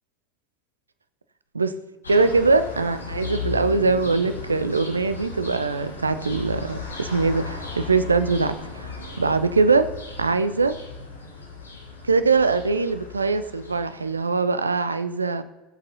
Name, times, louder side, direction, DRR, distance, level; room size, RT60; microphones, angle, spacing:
sound 1, 2.0-14.3, left 4 dB, 80° left, 1.4 m, -36 dB
voice 1, 2.1-8.9 9.2-9.9 10.2-10.7 12.0-15.4, right 4 dB, 80° right, 11 dB, 0.5 m, -22 dB
17.0 x 7.9 x 2.7 m, 1.2 s
figure-of-eight pair, 75°, 0 cm